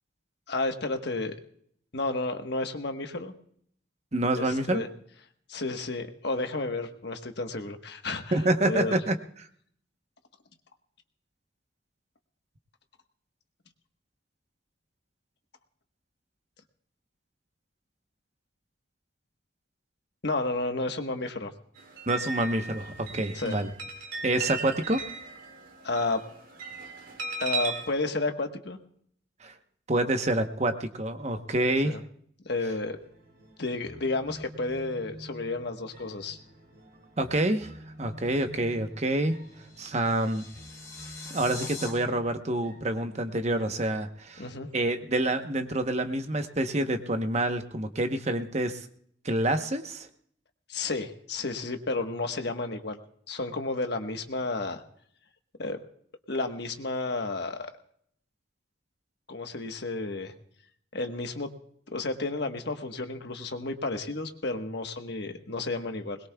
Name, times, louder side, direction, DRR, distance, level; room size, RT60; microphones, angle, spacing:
voice 1, 0.5-1.3 1.9-3.3 4.3-4.9 5.5-8.4 8.6-9.0 20.2-21.5 23.3-23.6 25.8-26.2 27.4-28.8 31.8-32.0 32.4-33.0 33.6-36.4 44.4-44.7 50.7-53.0 53.3-54.8 55.6-55.8 56.3-57.6 59.3-60.3 60.9-61.5 61.9-66.2, left 2 dB, 60° left, 6 dB, 1.3 m, -31 dB
voice 2, 4.1-4.8 8.3-9.2 22.1-23.7 24.2-25.0 29.4-29.5 29.9-32.0 37.2-37.7 38.0-39.4 39.8-40.5 41.3-44.4 44.7-48.9 49.2-50.1, right 1 dB, 35° right, 7 dB, 1.0 m, -27 dB
sound 1, 21.8-27.9, right 3 dB, 80° right, 3.0 m, -37 dB
sound 2, 32.6-45.5, equal, 55° right, 3.2 m, -49 dB
sound 3, 39.2-41.9, left 3 dB, 15° left, 5.1 m, -43 dB
21.5 x 21.0 x 2.3 m, 0.64 s
head